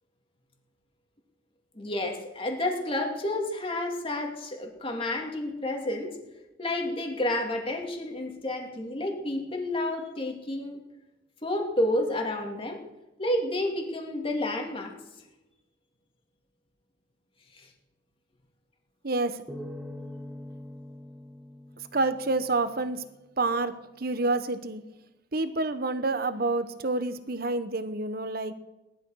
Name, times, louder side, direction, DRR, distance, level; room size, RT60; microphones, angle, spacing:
voice 1, 1.7-6.2 6.6-10.8 11.4-12.8 13.2-14.9 17.5-17.7, left 1 dB, 30° left, 2 dB, 2.6 m, -30 dB
voice 2, 19.0-19.4 21.9-23.0 23.4-24.8 25.3-28.5, right 2 dB, 55° right, 11 dB, 1.1 m, -28 dB
sound 1, 19.5-22.9, left 1 dB, 5° right, 1.6 m, -43 dB
18.5 x 12.0 x 6.4 m, 1.0 s
head